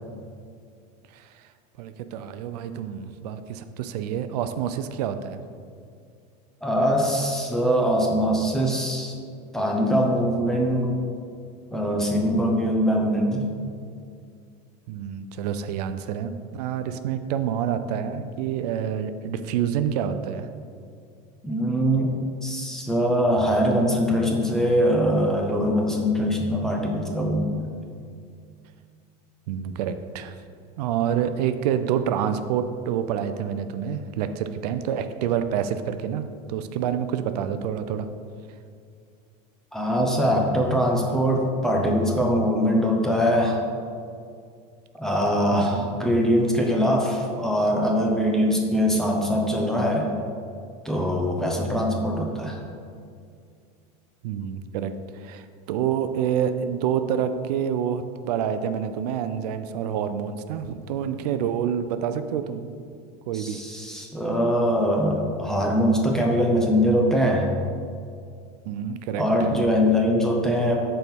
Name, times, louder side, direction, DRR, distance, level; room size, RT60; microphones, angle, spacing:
voice 1, 1.1-1.4 1.8-5.4 14.9-20.5 29.5-30.3 30.8-38.1 45.5-45.8 54.2-62.8 63.3-63.6 68.7-69.2 69.5-69.6, right 8 dB, 75° right, 10 dB, 0.5 m, -28 dB
voice 2, 6.6-9.1 9.5-10.9 11.7-13.5 21.4-22.1 22.4-27.7 39.7-43.6 45.0-50.1 50.8-52.6 63.3-67.5 69.2-70.8, equal, ahead, -1 dB, 0.6 m, -22 dB
6.2 x 4.4 x 5.2 m, 2.3 s
supercardioid pair, 165°, 20 cm